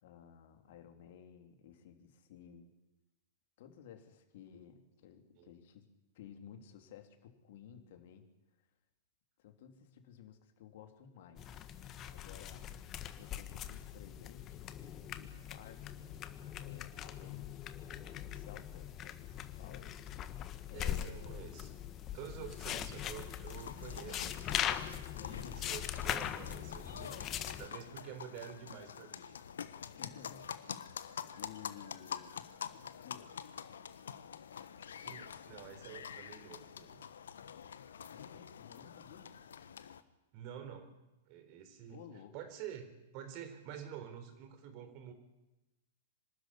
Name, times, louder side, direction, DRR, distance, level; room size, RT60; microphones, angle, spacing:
voice 1, 0.0-2.7 3.6-5.9 6.1-8.3 8.6-8.7 9.4-11.5 12.1-12.7 13.1-14.6 15.2-16.0 16.6-17.6 18.0-20.4 20.7-21.4 24.0-24.4 25.1-25.8 30.0-30.9 31.4-33.5 38.1-39.3 41.9-42.3, left 9 dB, 55° left, 6 dB, 3.0 m, -55 dB
sound 1, 11.4-27.7, left 10 dB, 30° left, 1.6 m, -41 dB
voice 2, 20.7-21.7 22.1-24.3 25.2-27.3 27.6-29.4 35.0-37.1 40.3-40.9 41.3-42.0 42.3-45.1, right 9 dB, 45° right, 9 dB, 3.9 m, -48 dB
sound 2, 23.5-40.0, left 8 dB, 70° left, 1.2 m, -47 dB
25.0 x 13.0 x 10.0 m, 1.0 s
hypercardioid pair, 110°, 0 cm